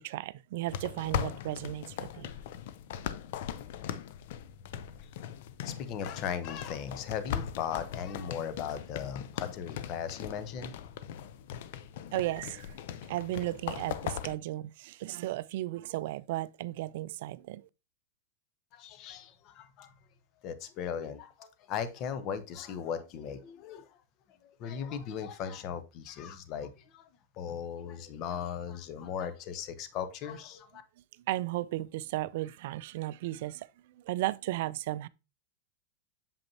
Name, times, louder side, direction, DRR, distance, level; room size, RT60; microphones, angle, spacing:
voice 1, 0.0-2.3 12.1-12.7 13.1-17.6 31.3-33.7 34.1-35.1, right 16 dB, 60° right, 0.3 m, -35 dB
sound 1, 0.7-14.4, left 9 dB, 60° left, 0.5 m, -39 dB
voice 2, 5.6-10.7 18.7-19.9 20.4-23.9 24.6-27.0 27.4-30.8, left 8 dB, 45° left, 0.8 m, -38 dB
7.1 x 5.1 x 2.7 m
hypercardioid pair, 105°, 0 cm